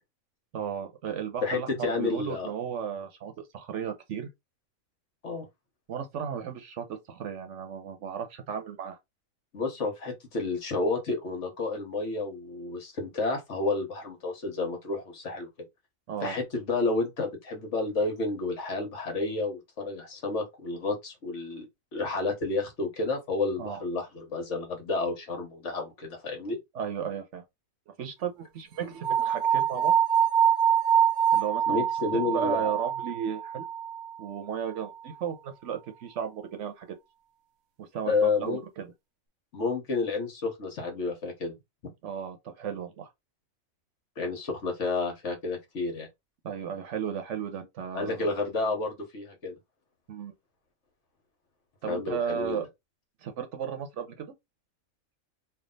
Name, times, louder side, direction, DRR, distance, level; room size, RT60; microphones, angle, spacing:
voice 1, 0.5-4.3 5.9-9.0 16.1-16.4 23.6-23.8 26.7-27.4 28.0-30.0 31.3-31.9 32.1-33.7 34.2-37.0 37.8-38.9 42.0-43.1 46.4-48.3 50.1-50.3 51.8-52.7 53.2-54.3, right 8 dB, 65° right, 1.0 m, -35 dB
voice 2, 1.4-2.5 5.2-5.4 9.5-15.5 16.2-21.7 21.9-26.6 31.7-32.7 38.1-38.6 39.5-41.5 44.2-46.1 47.9-49.5 51.9-52.6, left 3 dB, 60° left, 1.4 m, -30 dB
sound 1, 29.0-34.1, right 8 dB, 90° right, 1.2 m, -25 dB
3.3 x 2.4 x 3.8 m
omnidirectional pair, 1.4 m